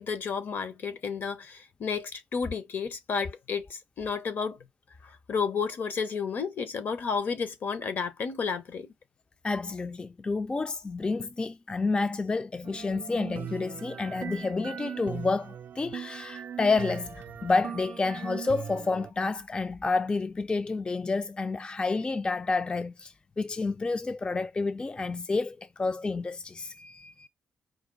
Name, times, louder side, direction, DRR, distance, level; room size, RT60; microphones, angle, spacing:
voice 1, 0.0-4.6 5.0-8.9, left 5 dB, 60° left, 0.9 m, -32 dB
voice 2, 9.4-27.3, left 3 dB, 25° left, 0.3 m, -29 dB
sound 1, 12.6-19.1, right 8 dB, 55° right, 0.3 m, -40 dB
5.0 x 2.2 x 3.8 m
cardioid pair, 75°, 4 cm